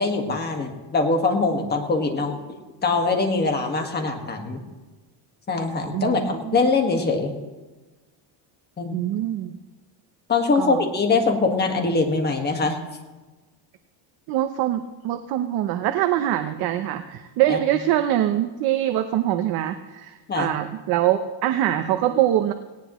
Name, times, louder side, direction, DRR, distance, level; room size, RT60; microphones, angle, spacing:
voice 1, 0.0-2.6 2.8-4.6 5.5-7.4 8.8-9.0 10.3-12.8 17.5-17.6 20.3-20.5, left 3 dB, 20° left, 3 dB, 1.7 m, -23 dB
voice 2, 5.9-6.6 8.9-9.6 10.5-10.8 14.3-22.5, right 12 dB, 50° right, 7 dB, 0.8 m, -24 dB
18.5 x 17.5 x 3.1 m, 1.2 s
cardioid pair, 170°, 48 cm